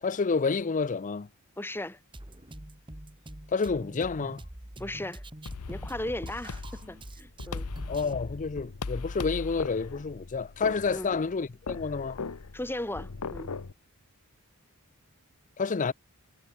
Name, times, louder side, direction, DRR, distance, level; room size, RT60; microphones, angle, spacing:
voice 1, 0.0-1.3 3.5-4.4 7.9-12.2 15.6-15.9, left 4 dB, 35° left, 0.5 m, -29 dB
voice 2, 1.6-2.0 4.8-5.2 5.7-7.7 10.9-11.1 12.5-13.5, left 1 dB, 10° left, 1.8 m, -36 dB
Drum kit, 2.1-8.1, right 1 dB, 20° right, 2.0 m, -45 dB
sound 1, 5.5-13.7, left 4 dB, 90° left, 0.9 m, -38 dB
head